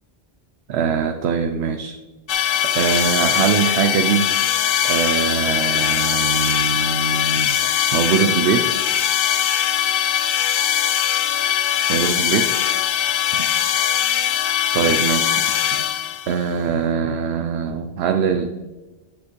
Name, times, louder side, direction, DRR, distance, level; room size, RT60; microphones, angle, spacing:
voice 1, 0.7-2.0 2.6-4.3 4.8-8.7 11.8-12.5 13.3-13.4 14.7-15.3 16.3-18.5, right 7 dB, 80° right, 7 dB, 0.8 m, -22 dB
sound 1, 2.3-16.4, left 10 dB, 65° left, 0.7 m, -21 dB
8.4 x 7.6 x 3.1 m, 1.2 s
omnidirectional pair, 1.1 m